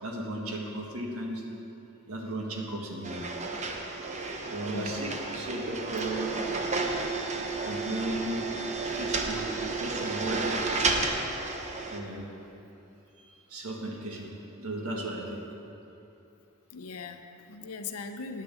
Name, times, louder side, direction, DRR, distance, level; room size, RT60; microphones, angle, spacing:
voice 1, 0.0-1.4 2.1-3.3 4.5-6.3 7.6-8.4 8.8-11.3 11.9-12.4 13.2-14.3 14.6-15.4, right 1 dB, 80° right, 0 dB, 1.7 m, -36 dB
sound 1, 3.0-12.0, right 3 dB, 35° right, 0.8 m, -32 dB
voice 2, 4.7-5.0 16.7-18.4, left 4 dB, 90° left, 6 dB, 0.7 m, -40 dB
9.3 x 7.0 x 8.4 m, 2.8 s
head